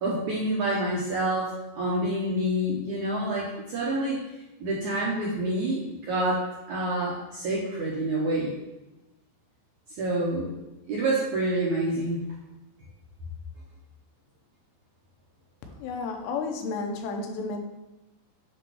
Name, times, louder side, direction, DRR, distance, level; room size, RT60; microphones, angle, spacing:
voice 1, 0.0-4.2 4.6-8.5 10.0-10.5 10.9-12.2, right 1 dB, 70° right, -5 dB, 1.8 m, -27 dB
voice 2, 15.8-17.6, left 4 dB, 90° left, 3 dB, 3.1 m, -32 dB
7.9 x 3.0 x 6.1 m, 1.0 s
omnidirectional pair, 4.9 m